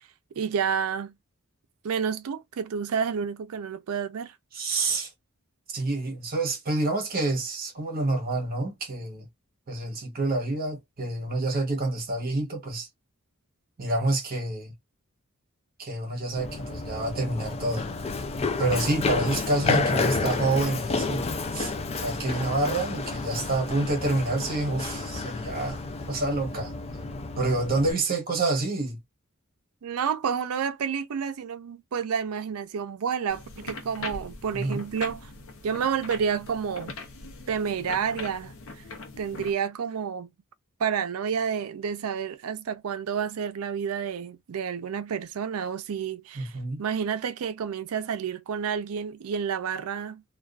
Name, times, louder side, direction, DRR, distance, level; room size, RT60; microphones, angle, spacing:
voice 1, 0.4-1.1 1.8-4.3 29.8-35.3 35.6-37.0 37.5-38.5 39.2-40.3 40.8-46.5 46.8-50.2, right 7 dB, 85° right, 0.4 m, -29 dB
voice 2, 4.5-5.1 5.7-9.3 9.7-12.9 13.8-14.7 15.8-17.9 18.6-25.8 26.1-26.7 27.4-29.0 34.5-34.8 46.4-46.8, right 2 dB, 45° right, 0.9 m, -28 dB
Run, 16.4-27.9, left 3 dB, 30° left, 0.3 m, -30 dB
sound 1, 33.3-39.5, left 3 dB, 70° left, 0.6 m, -41 dB
2.4 x 2.2 x 2.3 m
head